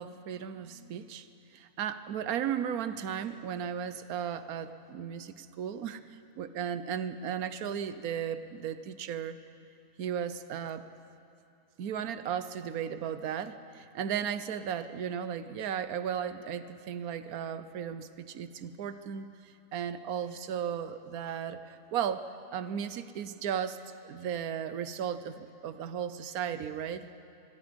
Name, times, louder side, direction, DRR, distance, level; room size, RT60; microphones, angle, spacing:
voice 1, 0.0-9.4 10.0-10.9 11.8-27.1, right 8 dB, 75° right, 12 dB, 1.3 m, -35 dB
25.5 x 21.0 x 5.2 m, 2.6 s
omnidirectional pair, 1.6 m